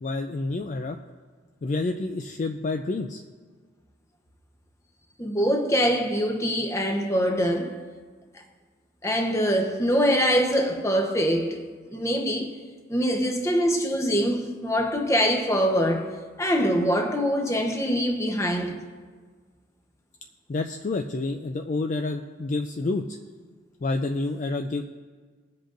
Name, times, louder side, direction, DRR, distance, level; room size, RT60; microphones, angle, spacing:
voice 1, 0.0-1.0 1.6-3.2 20.5-23.2 23.8-24.8, left 3 dB, 40° left, 0.4 m, -28 dB
voice 2, 5.2-7.8 9.0-12.6 12.9-18.8, equal, 15° left, 0.9 m, -24 dB
20.5 x 7.6 x 2.6 m
head